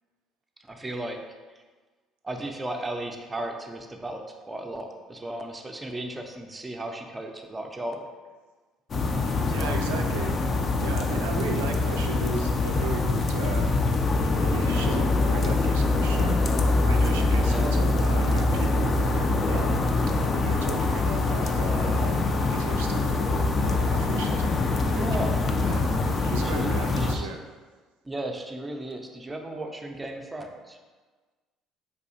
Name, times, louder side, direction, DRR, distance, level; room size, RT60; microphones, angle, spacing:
voice 1, 0.6-1.2 1.5-1.6 2.2-8.1 9.4-9.8 17.4-17.8 24.9-25.4 26.1-27.3 28.0-30.8, right 1 dB, 20° right, 3 dB, 0.4 m, -35 dB
sound 1, 8.9-27.1, left 3 dB, 45° left, 0.4 m, -24 dB
voice 2, 9.5-10.4 10.8-13.8 14.2-27.4, right 4 dB, 90° right, 4 dB, 0.3 m, -37 dB
4.1 x 2.7 x 2.7 m, 1.3 s
hypercardioid pair, 65°, 0 cm